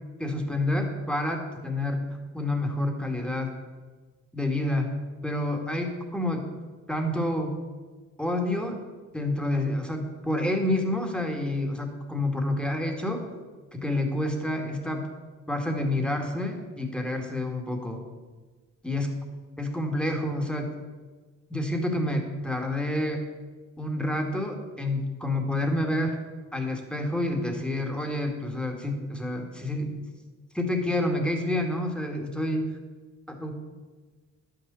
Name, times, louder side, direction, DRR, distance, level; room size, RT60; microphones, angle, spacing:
voice 1, 0.2-2.0 2.3-3.5 4.3-4.9 5.2-6.5 6.9-7.5 8.2-8.8 9.1-13.2 13.7-15.0 15.5-18.0 18.8-19.1 19.6-20.7 21.5-23.2 23.8-26.2 26.5-30.0 30.5-32.6 33.3-33.5, left 1 dB, 5° left, 3 dB, 2.1 m, -28 dB
11.0 x 6.7 x 7.0 m, 1.4 s
cardioid pair, 90°, 30 cm